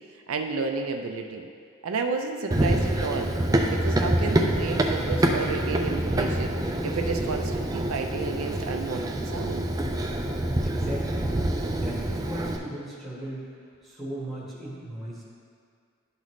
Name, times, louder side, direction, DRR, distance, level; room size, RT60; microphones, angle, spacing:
voice 1, 0.3-1.5 1.8-3.4 3.7-6.5 6.8-9.6, right 4 dB, 80° right, 4 dB, 0.5 m, -31 dB
Run, 2.5-12.6, right 1 dB, 15° right, 0.4 m, -26 dB
voice 2, 10.6-11.2 11.6-13.5 13.8-15.2, right 1 dB, ahead, -7 dB, 1.4 m, -37 dB
11.5 x 4.0 x 3.1 m, 2.2 s
head